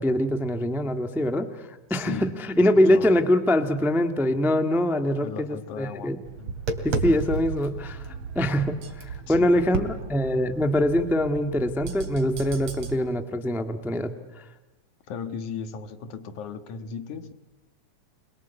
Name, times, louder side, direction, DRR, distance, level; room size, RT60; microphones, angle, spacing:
voice 1, 0.0-2.1 2.6-6.2 6.8-8.0 8.3-14.1 14.4-14.5, left 1 dB, ahead, 7 dB, 0.8 m, -23 dB
voice 2, 1.9-3.2 5.2-6.6 9.3-9.9 15.1-17.3, left 6 dB, 80° left, 9 dB, 3.0 m, -37 dB
Tap, 6.3-13.0, right 4 dB, 60° right, 3.7 m, -33 dB
29.5 x 22.5 x 8.2 m, 1.0 s
omnidirectional pair, 3.4 m